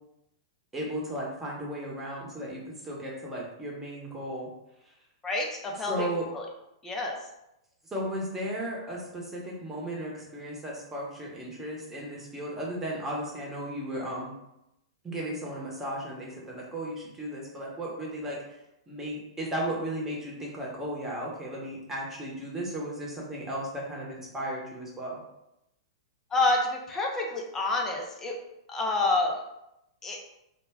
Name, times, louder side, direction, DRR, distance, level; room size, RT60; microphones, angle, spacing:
voice 1, 0.7-4.5 5.9-6.3 7.9-14.3 15.0-18.4 18.9-25.2, right 1 dB, 10° right, -4 dB, 0.9 m, -35 dB
voice 2, 5.2-6.5 6.8-7.2 26.3-28.4 28.7-29.4 30.0-30.2, left 2 dB, 15° left, 0 dB, 0.5 m, -28 dB
2.2 x 2.1 x 3.5 m, 0.86 s
hypercardioid pair, 110°, 3 cm